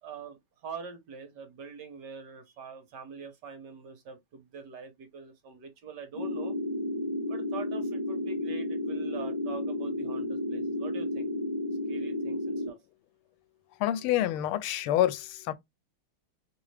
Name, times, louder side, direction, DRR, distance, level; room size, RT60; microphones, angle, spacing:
voice 1, 0.0-6.5 7.3-11.3 11.9-12.8, right 5 dB, 60° right, 1.3 m, -44 dB
sound 1, 6.1-12.7, left 1 dB, 25° left, 1.0 m, -32 dB
voice 2, 13.8-15.5, left 12 dB, 85° left, 1.5 m, -27 dB
3.7 x 3.5 x 3.2 m
omnidirectional pair, 2.3 m